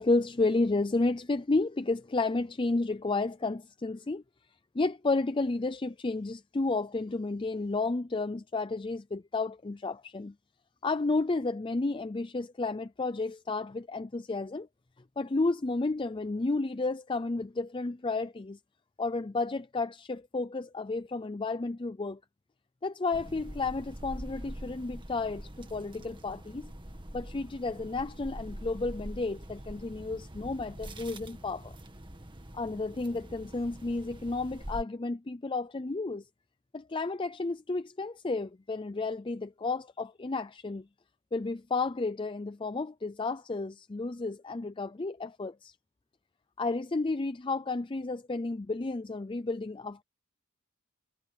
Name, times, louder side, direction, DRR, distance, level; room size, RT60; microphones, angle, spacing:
voice 1, 0.0-4.2 4.7-10.3 10.8-14.7 15.2-18.6 19.0-22.2 22.8-26.7 27.1-31.8 32.5-36.3 36.7-40.9 41.3-45.7 46.6-50.0, left 3 dB, 25° left, 0.5 m, -32 dB
sound 1, 23.1-34.8, right 1 dB, 20° right, 1.9 m, -44 dB
head